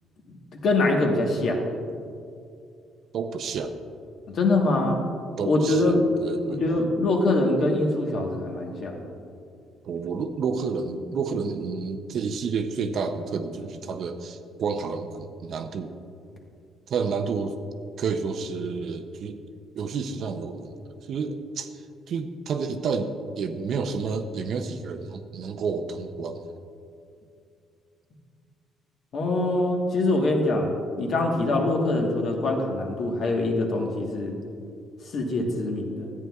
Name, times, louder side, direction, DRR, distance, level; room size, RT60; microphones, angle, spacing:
voice 1, 0.6-1.6 4.3-5.0 5.5-6.1 6.5-9.0 29.1-34.4 35.1-36.1, left 2 dB, 45° left, 1 dB, 1.2 m, -24 dB
voice 2, 3.1-3.8 5.4-6.6 9.8-15.9 16.9-17.6 18.0-19.4 19.7-26.5, right 5 dB, 45° right, 7 dB, 0.5 m, -30 dB
13.5 x 9.2 x 2.3 m, 2.4 s
cardioid pair, 160°, 0 cm